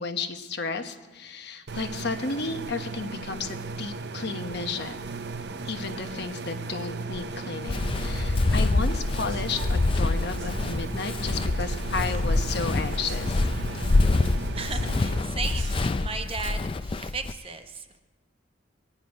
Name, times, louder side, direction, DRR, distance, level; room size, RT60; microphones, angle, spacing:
voice 1, 0.0-5.0 5.6-13.4, left 4 dB, 55° left, 6 dB, 1.0 m, -33 dB
sound 1, 1.7-15.2, right 3 dB, 55° right, 0.6 m, -36 dB
Walk footsteps, 7.7-17.3, left 2 dB, 25° left, 0.3 m, -26 dB
sound 2, 8.5-16.3, right 2 dB, 80° right, 1.4 m, -44 dB
voice 2, 14.2-18.0, right 4 dB, 30° right, 7 dB, 0.8 m, -36 dB
21.5 x 9.5 x 5.2 m, 1.3 s
head